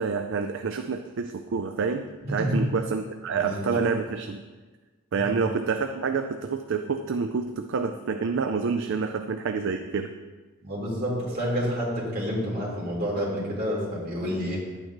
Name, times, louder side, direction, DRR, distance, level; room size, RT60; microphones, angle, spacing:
voice 1, 0.0-4.4 5.1-10.1, right 5 dB, 60° right, 6 dB, 0.4 m, -28 dB
voice 2, 2.2-2.6 3.3-3.8 5.2-5.3 10.6-14.6, equal, 45° right, -6 dB, 3.1 m, -29 dB
11.0 x 8.9 x 3.0 m, 1.3 s
head